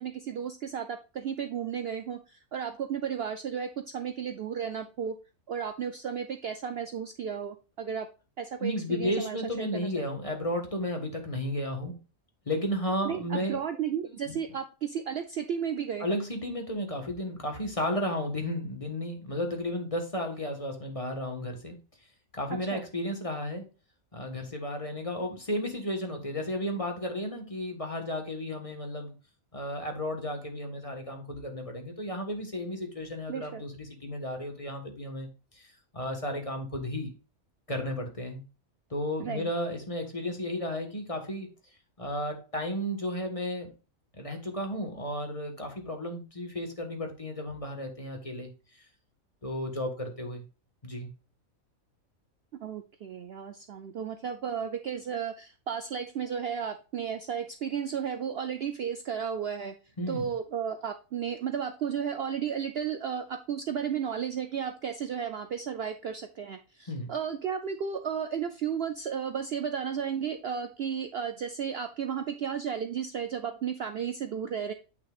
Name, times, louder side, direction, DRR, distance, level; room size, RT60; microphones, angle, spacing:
voice 1, 0.0-5.2 5.5-8.1 8.4-10.0 13.0-16.2 22.7-22.8 33.3-33.6 39.2-39.5 52.5-59.7 60.1-74.7, right 7 dB, 60° right, 7 dB, 0.7 m, -33 dB
voice 2, 8.6-11.9 12.4-13.6 14.0-14.4 16.0-21.8 22.3-23.6 24.1-29.1 29.5-35.3 35.5-37.1 37.7-38.4 38.9-41.5 42.0-43.7 44.1-48.5 48.8-48.9 49.4-50.4 50.8-51.1 60.0-60.3 66.9-67.1, left 1 dB, 25° left, 3 dB, 1.5 m, -33 dB
9.0 x 5.9 x 2.4 m, 0.33 s
omnidirectional pair, 1.5 m